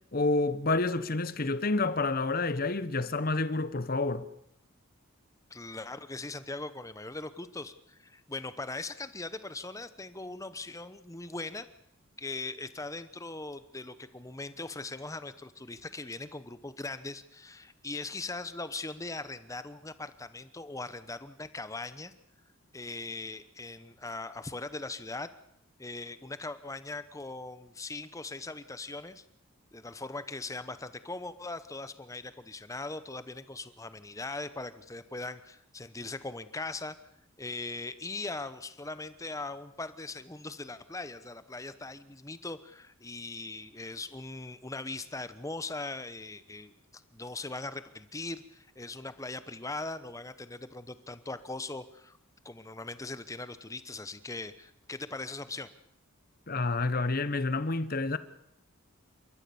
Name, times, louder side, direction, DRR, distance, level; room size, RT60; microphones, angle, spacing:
voice 1, 0.1-4.3 56.5-58.2, left 3 dB, 40° left, 1.0 m, -29 dB
voice 2, 5.5-11.7 12.2-22.1 22.7-25.3 25.8-29.2 29.7-37.0 37.4-52.2 52.4-55.7, left 3 dB, 15° left, 0.9 m, -40 dB
29.5 x 14.0 x 7.1 m
head